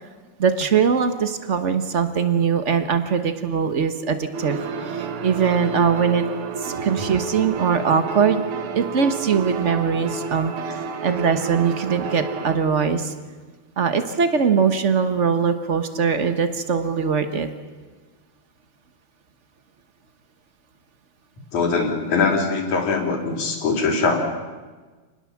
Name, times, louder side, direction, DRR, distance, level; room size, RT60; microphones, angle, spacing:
voice 1, 0.4-4.6 4.8-6.3 6.6-8.4 8.7-13.1 13.8-17.5, right 6 dB, 70° right, 9 dB, 0.6 m, -21 dB
sound 1, 4.3-12.6, right 5 dB, 90° right, 3.1 m, -30 dB
voice 2, 21.5-24.2, left 4 dB, 80° left, 2 dB, 4.8 m, -22 dB
28.5 x 20.0 x 7.3 m, 1.3 s
omnidirectional pair, 3.3 m